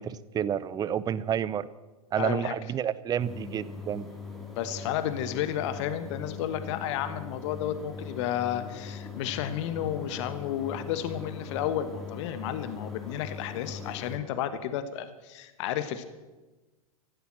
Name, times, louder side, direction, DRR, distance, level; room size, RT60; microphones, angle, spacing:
voice 1, 0.0-1.7 2.1-4.1, right 9 dB, 20° right, 18 dB, 0.6 m, -30 dB
voice 2, 2.2-2.5 4.5-16.0, left 10 dB, 50° left, 11 dB, 1.3 m, -32 dB
sound 1, 3.2-14.2, left 5 dB, ahead, 3.3 m, -41 dB
14.5 x 12.0 x 7.5 m, 1.2 s
hypercardioid pair, 105°, 19 cm